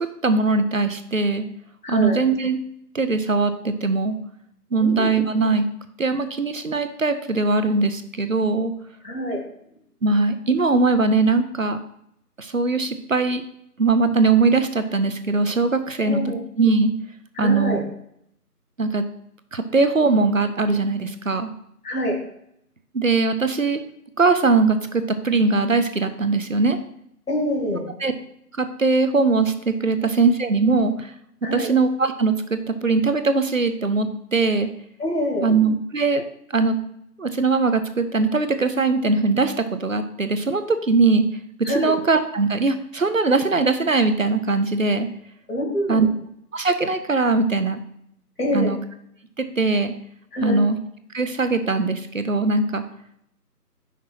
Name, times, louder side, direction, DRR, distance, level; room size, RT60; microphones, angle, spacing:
voice 1, 0.2-1.5 1.9-2.6 2.9-4.2 4.7-5.7 6.0-8.7 10.0-11.8 12.4-13.4 13.8-16.9 17.4-17.8 18.8-19.0 19.5-21.5 22.9-23.8 24.2-26.8 28.0-28.1 28.5-31.1 31.5-34.7 35.4-36.2 36.5-36.8 37.2-41.2 41.6-45.1 45.9-46.1 46.5-47.8 48.5-48.8 49.4-49.9 50.4-50.8 51.1-52.8, right 3 dB, 55° right, 10 dB, 0.6 m, -21 dB
voice 2, 1.8-2.2 4.8-5.1 9.0-9.4 16.0-16.4 17.4-17.8 21.8-22.2 27.3-27.8 31.4-31.7 35.0-35.5 41.6-41.9 45.5-46.1 48.4-48.7 50.3-50.6, equal, 65° left, 0 dB, 2.4 m, -25 dB
5.9 x 4.2 x 5.8 m, 0.72 s
figure-of-eight pair, 175°, 49 cm